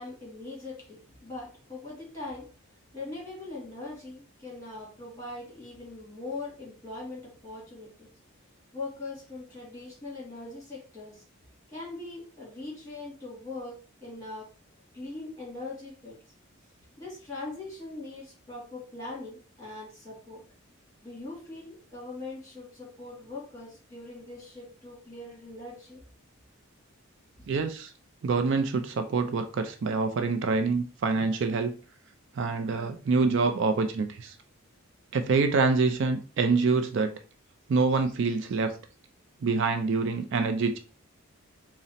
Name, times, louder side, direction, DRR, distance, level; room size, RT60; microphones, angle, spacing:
voice 1, 0.0-2.5 2.9-8.1 8.7-11.2 11.7-14.5 14.9-16.2 17.0-20.4 21.0-26.0 27.4-27.5, left 2 dB, 15° left, 1.9 m, -41 dB
voice 2, 27.5-27.9 28.2-31.8 32.4-34.3 35.1-37.2 37.7-38.7 39.4-40.8, right 4 dB, 55° right, 0.4 m, -26 dB
4.0 x 2.0 x 4.0 m
head